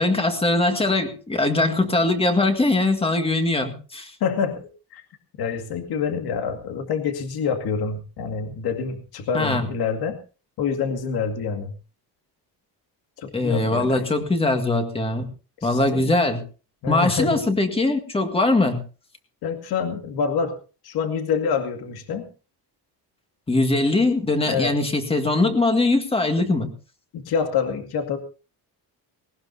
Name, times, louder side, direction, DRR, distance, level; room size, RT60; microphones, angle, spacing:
voice 1, 0.0-4.1 9.3-9.7 13.3-15.3 15.6-16.4 16.9-18.8 23.5-26.7, left 2 dB, 15° left, 6 dB, 2.0 m, -21 dB
voice 2, 4.2-5.0 5.4-10.2 10.6-11.7 13.2-14.1 15.6-16.1 16.8-17.4 19.4-20.6 20.8-22.2 24.5-24.7 27.1-28.2, left 6 dB, 65° left, 6 dB, 2.3 m, -26 dB
19.5 x 18.5 x 2.8 m, 0.34 s
cardioid pair, 165°, 40 cm